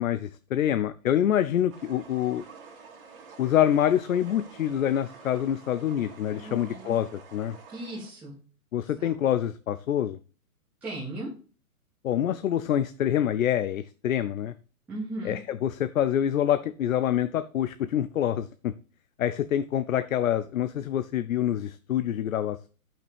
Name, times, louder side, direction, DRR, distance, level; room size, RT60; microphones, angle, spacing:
voice 1, 0.0-2.4 3.4-7.6 8.7-10.2 12.0-14.5 15.2-18.7 19.2-22.7, left 10 dB, 65° left, 12 dB, 0.6 m, -26 dB
sound 1, 1.7-8.1, right 5 dB, 40° right, 2.2 m, -49 dB
voice 2, 6.4-6.9 7.7-8.4 9.0-9.2 10.8-11.3 14.9-15.4, right 1 dB, 5° right, -8 dB, 1.0 m, -37 dB
10.5 x 5.8 x 3.5 m, 0.38 s
hypercardioid pair, 160°, 43 cm